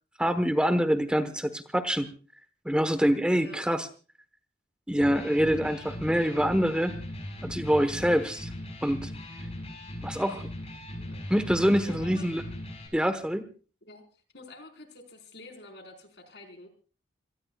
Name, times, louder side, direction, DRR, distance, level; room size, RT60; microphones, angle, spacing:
voice 1, 0.2-2.1 2.6-3.9 4.9-7.0 7.4-8.4 8.8-9.1 10.0-10.5 11.3-12.4 12.9-13.5, equal, 5° right, 10 dB, 1.1 m, -25 dB
voice 2, 3.3-3.7 8.0-8.2 10.9-11.2 11.7-12.3 13.8-14.0 14.3-16.7, left 2 dB, 75° left, 5 dB, 4.4 m, -48 dB
Electric guitar, 4.9-12.9, left 1 dB, 35° left, 6.8 m, -39 dB
27.0 x 18.5 x 2.3 m, 0.37 s
head